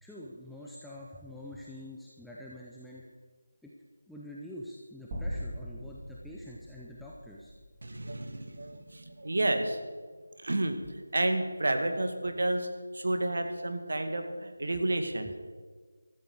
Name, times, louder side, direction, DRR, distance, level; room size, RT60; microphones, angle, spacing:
voice 1, 0.0-3.1 3.6-3.7 4.1-7.5 15.2-15.4, left 1 dB, ahead, -6 dB, 0.7 m, -46 dB
sound 1, 5.1-9.3, equal, 20° right, 3.9 m, -42 dB
voice 2, 7.8-9.8 10.4-12.7 12.9-15.3, right 1 dB, 65° right, 6 dB, 2.0 m, -30 dB
15.5 x 13.5 x 4.8 m, 1.5 s
figure-of-eight pair, 170°, 0 cm